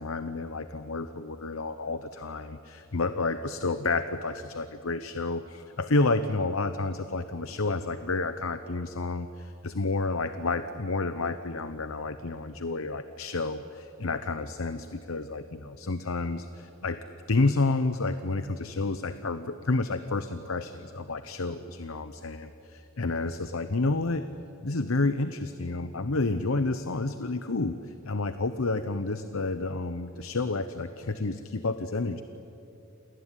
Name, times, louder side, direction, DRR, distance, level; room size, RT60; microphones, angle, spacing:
voice 1, 0.0-17.0 17.3-24.3 24.6-32.2, left 3 dB, 70° left, 10 dB, 0.9 m, -30 dB
28.0 x 19.5 x 9.9 m, 2.9 s
head